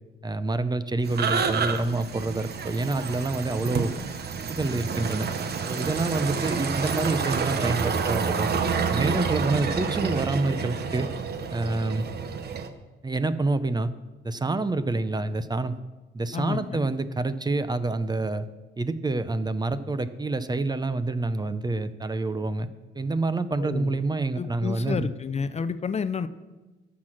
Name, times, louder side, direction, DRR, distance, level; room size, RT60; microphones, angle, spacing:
voice 1, 0.2-3.9 4.5-5.3 5.7-8.5 8.9-11.1 11.5-12.1 13.0-13.9 14.2-15.8 16.1-18.5 18.8-22.7 22.9-25.1, right 2 dB, 20° right, 12 dB, 0.6 m, -27 dB
sound 1, 1.0-12.7, right 5 dB, 55° right, 1.0 m, -29 dB
voice 2, 16.3-16.9 23.6-24.0 24.3-26.3, left 5 dB, 35° left, 12 dB, 0.6 m, -30 dB
13.5 x 6.0 x 6.4 m, 1.2 s
cardioid pair, 90°, 20 cm